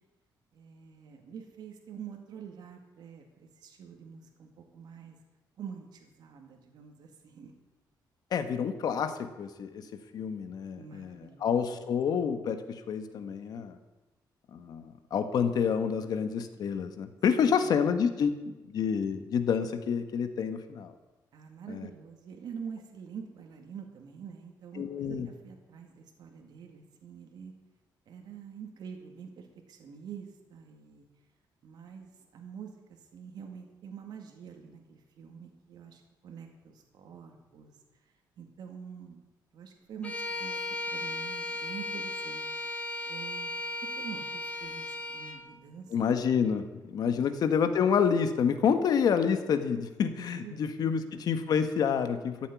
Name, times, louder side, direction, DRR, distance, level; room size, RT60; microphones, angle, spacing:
voice 1, 0.5-5.2 5.6-7.5 10.8-11.5 11.8-11.9 17.4-17.7 21.3-27.5 28.1-31.1 31.6-37.7 38.4-39.2 39.5-40.6 40.9-42.5 43.1-43.5 44.0-45.9 47.1-47.3 50.4-51.2, right 7 dB, 60° right, 3 dB, 2.1 m, -46 dB
voice 2, 8.3-9.9 10.1-13.8 14.5-20.9 21.7-21.9 24.8-25.3 45.9-52.5, left 7 dB, 55° left, 9 dB, 1.3 m, -28 dB
Bowed string instrument, 40.0-45.4, left 2 dB, 15° left, 2.0 m, -36 dB
14.0 x 7.5 x 9.5 m, 1.1 s
cardioid pair, 160°, 8 cm